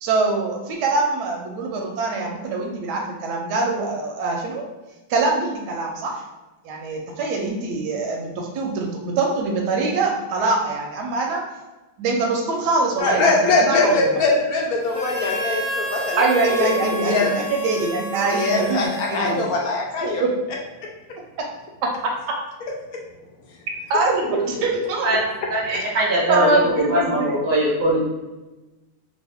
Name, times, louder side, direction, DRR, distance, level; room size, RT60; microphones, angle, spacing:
voice 1, 0.0-4.6 5.1-6.2 6.6-11.4 12.0-13.3 13.6-14.1 16.2-19.4 20.2-20.3 23.9-25.1 25.6-25.8 26.3-27.3, right 3 dB, 85° right, 0 dB, 1.2 m, -23 dB
voice 2, 13.0-16.7 17.0-17.5 18.3-20.3, left 3 dB, 70° left, -1 dB, 1.0 m, -22 dB
Harmonica, 14.9-19.7, equal, 40° left, 0.5 m, -30 dB
voice 3, 25.5-28.1, right 1 dB, 15° right, -6 dB, 0.6 m, -21 dB
3.0 x 2.4 x 3.4 m, 1.1 s
omnidirectional pair, 1.7 m